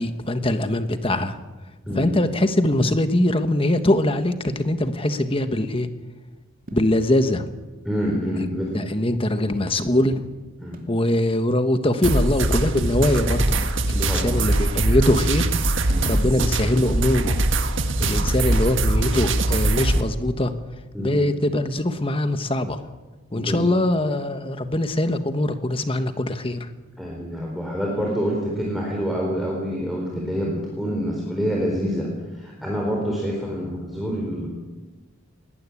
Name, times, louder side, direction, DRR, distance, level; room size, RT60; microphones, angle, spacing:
voice 1, 0.0-1.4 1.9-5.9 6.7-7.5 8.4-8.5 8.7-10.2 10.9-15.5 16.0-17.4 18.0-20.5 21.0-22.8 23.3-26.7, left 1 dB, 25° left, 9 dB, 1.4 m, -22 dB
sound 1, 6.7-7.0 7.9-9.1 10.7-11.0, equal, 40° right, 2.7 m, -44 dB
voice 2, 7.8-8.7 10.6-10.8 14.0-14.4 15.9-16.1 18.0-18.2 20.9-21.2 23.3-23.7 27.0-34.6, equal, ahead, -3 dB, 4.1 m, -27 dB
sound 2, 12.0-20.0, right 2 dB, 60° right, 1.7 m, -22 dB
21.0 x 19.0 x 8.5 m, 1.2 s
head